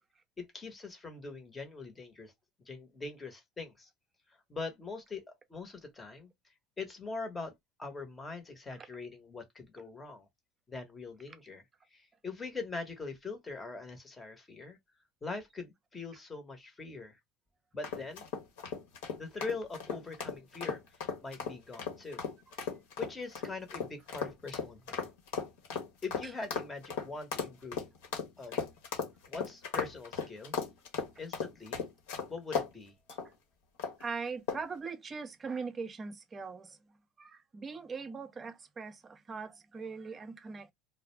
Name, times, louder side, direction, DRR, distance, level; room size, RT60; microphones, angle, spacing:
voice 1, 0.4-2.3 2.6-3.9 4.3-6.3 6.8-7.5 7.8-10.3 10.7-11.6 11.9-14.8 15.2-17.2 17.7-18.2 19.2-22.2 23.0-25.1 26.0-27.9 28.4-28.7 29.3-30.5 31.2-31.8 32.3-32.9, left 4 dB, 20° left, 0.9 m, -42 dB
sound 1, 17.8-32.7 33.1-33.3 33.8-34.1 34.5-34.8, left 5 dB, 80° left, 1.0 m, -36 dB
voice 2, 34.0-36.8 37.2-40.7, right 5 dB, 25° right, 0.5 m, -41 dB
2.4 x 2.0 x 3.1 m
supercardioid pair, 115°, 0 cm